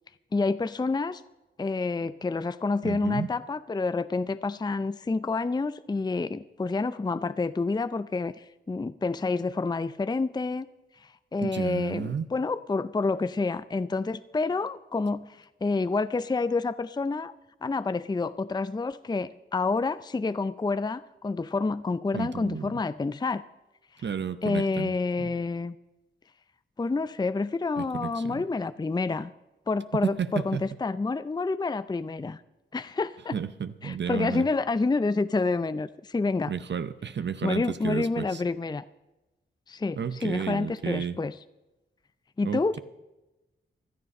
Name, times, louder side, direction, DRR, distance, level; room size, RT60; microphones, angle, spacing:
voice 1, 0.3-1.2 1.6-10.7 11.0-17.3 17.6-23.4 24.4-25.8 26.8-29.3 29.7-32.4 32.7-33.4 33.8-36.5 37.4-38.8 39.7-41.3 42.4-42.8, left 3 dB, 20° left, 15 dB, 0.5 m, -28 dB
voice 2, 2.8-3.3 11.4-12.3 22.1-22.7 24.0-25.3 27.8-28.4 30.0-30.6 33.3-34.5 36.5-38.4 40.0-41.2 42.4-42.8, right 7 dB, 55° right, 12 dB, 0.7 m, -32 dB
16.0 x 11.0 x 5.4 m, 1.0 s
cardioid pair, 50°, 21 cm